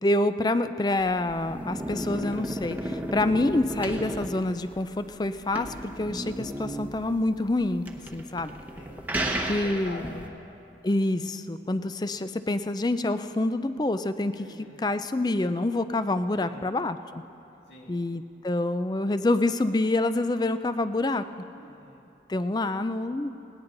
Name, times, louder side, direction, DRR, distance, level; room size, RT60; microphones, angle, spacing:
voice 1, 0.0-8.6 9.5-10.2 10.8-17.2 17.9-21.2 22.3-23.3, left 2 dB, 25° left, 11 dB, 0.4 m, -27 dB
sound 1, 1.0-10.3, right 1 dB, 10° right, 1.0 m, -34 dB
voice 2, 8.7-10.4 14.4-14.9 16.4-16.7 17.7-18.0 21.6-22.1, left 1 dB, 85° left, -1 dB, 2.5 m, -46 dB
19.5 x 18.5 x 3.9 m, 2.8 s
head